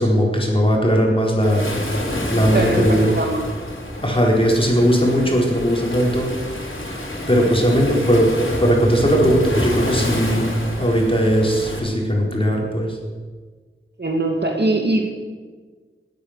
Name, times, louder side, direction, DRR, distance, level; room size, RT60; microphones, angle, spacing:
voice 1, 0.0-1.6 2.3-3.1 4.0-6.3 6.8-8.3 8.6-10.5 10.8-13.0, equal, 25° left, -2 dB, 4.4 m, -18 dB
Waves surf, 1.4-11.8, left 1 dB, 75° left, 4.1 m, -28 dB
voice 2, 2.5-3.4 14.0-15.1, right 2 dB, 55° right, 2 dB, 2.3 m, -21 dB
19.0 x 9.8 x 6.7 m, 1.5 s
wide cardioid pair, 45°, 21 cm